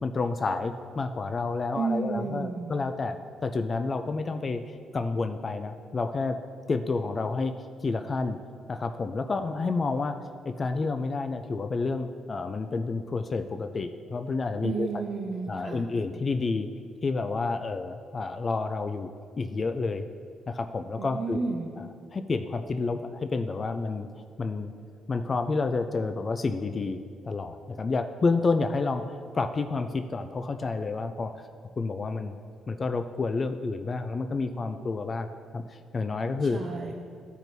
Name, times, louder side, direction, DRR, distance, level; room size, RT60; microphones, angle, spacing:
voice 1, 0.0-3.2 3.4-6.4 6.7-8.4 8.7-10.2 10.5-14.9 15.5-16.7 17.0-19.1 19.4-20.0 20.5-21.4 21.8-24.1 24.4-24.7 25.1-27.0 27.2-31.3 31.8-32.4 32.7-35.3 35.5-36.6, left 3 dB, 35° left, 8 dB, 0.3 m, -29 dB
voice 2, 1.7-2.7 14.6-15.9 21.0-21.7 36.5-36.9, right 4 dB, 60° right, -2 dB, 0.8 m, -32 dB
13.5 x 4.5 x 2.7 m, 2.3 s
cardioid pair, 100°, 0 cm